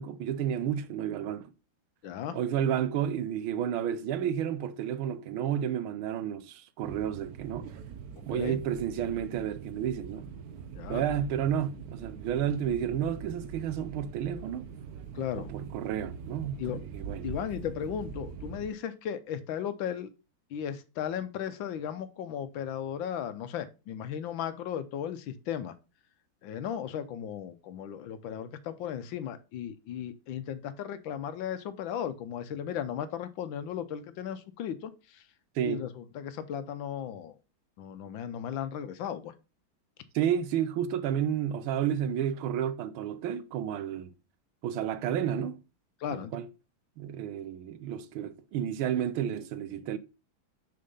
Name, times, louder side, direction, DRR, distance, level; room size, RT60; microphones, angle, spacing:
voice 1, 0.0-1.5 2.3-7.7 8.3-10.3 10.9-14.7 15.4-17.3 35.6-35.8 40.1-44.1 44.6-45.6 46.1-46.5 47.0-50.0, right 9 dB, 80° right, 1.5 m, -31 dB
voice 2, 2.0-2.4 8.2-8.6 10.7-11.0 15.1-15.5 16.6-16.8 17.2-20.1 20.5-25.7 26.4-35.2 35.6-37.3 37.8-39.3 46.0-46.3, left 9 dB, 75° left, 1.4 m, -36 dB
sound 1, 6.8-18.7, right 6 dB, 65° right, 1.0 m, -43 dB
6.6 x 4.4 x 5.3 m
omnidirectional pair, 2.3 m